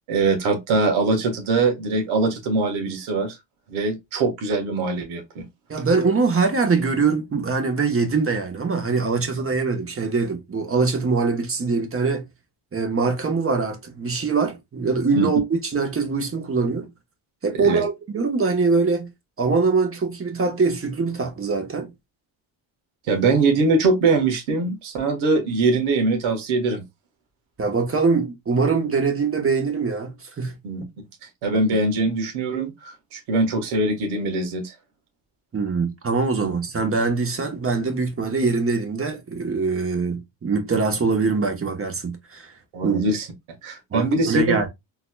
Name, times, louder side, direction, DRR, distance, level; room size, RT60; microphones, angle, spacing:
voice 1, 0.1-3.4 3.7-5.4 15.1-15.3 17.6-17.8 23.1-26.8 30.6-30.8 31.4-34.7 36.4-36.5 42.7-43.3 43.6-44.6, right 3 dB, 80° right, 1.5 m, -22 dB
voice 2, 5.7-12.2 12.7-16.9 17.4-19.1 19.4-21.9 27.6-30.5 35.5-42.5 42.8-43.0 43.9-44.7, right 4 dB, 25° right, 1.1 m, -23 dB
4.0 x 2.9 x 2.2 m
cardioid pair, 85°, 48 cm